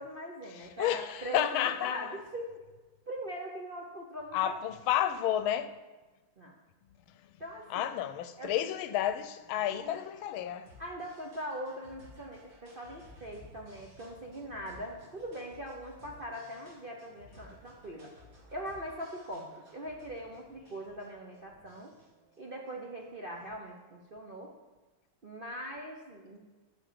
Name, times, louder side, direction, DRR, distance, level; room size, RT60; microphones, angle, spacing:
voice 1, 0.0-2.5 3.1-4.5 6.4-6.6 7.4-7.9 8.4-8.8 9.6-10.0 10.8-18.1 18.5-21.9 22.4-24.5 25.2-26.4, equal, 45° right, 0.7 m, -41 dB
voice 2, 0.5-2.2 4.3-5.7 7.7-10.7, left 11 dB, 90° left, 1.5 m, -31 dB
sound 1, 8.6-23.5, left 1 dB, 75° right, 3.1 m, -58 dB
9.6 x 5.7 x 6.7 m
omnidirectional pair, 2.2 m